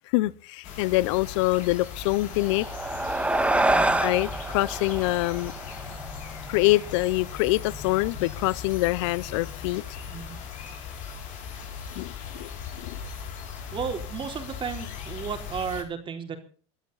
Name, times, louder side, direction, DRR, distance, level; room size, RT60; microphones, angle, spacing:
voice 1, 0.1-2.7 4.0-5.5 6.5-9.8 11.9-12.5 12.8-13.0, left 20 dB, 75° left, 0.8 m, -25 dB
sound 1, 0.6-15.8, left 6 dB, 55° left, 6.1 m, -38 dB
sound 2, 2.3-7.1, right 2 dB, 10° right, 1.7 m, -27 dB
voice 2, 3.7-4.0 10.1-10.4 13.7-16.4, right 6 dB, 35° right, 3.8 m, -34 dB
22.5 x 13.0 x 4.1 m
supercardioid pair, 105°, 15 cm